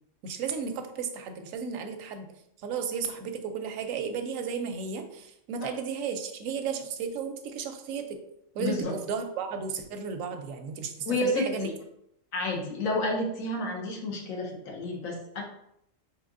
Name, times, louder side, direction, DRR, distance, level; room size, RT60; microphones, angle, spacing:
voice 1, 0.2-2.3 2.6-8.2 8.5-11.7, right 6 dB, 80° right, 6 dB, 1.0 m, -34 dB
voice 2, 8.6-8.9 11.1-11.7 12.3-15.4, left 1 dB, 85° left, 1 dB, 1.3 m, -30 dB
4.6 x 2.9 x 2.5 m, 0.76 s
omnidirectional pair, 1.4 m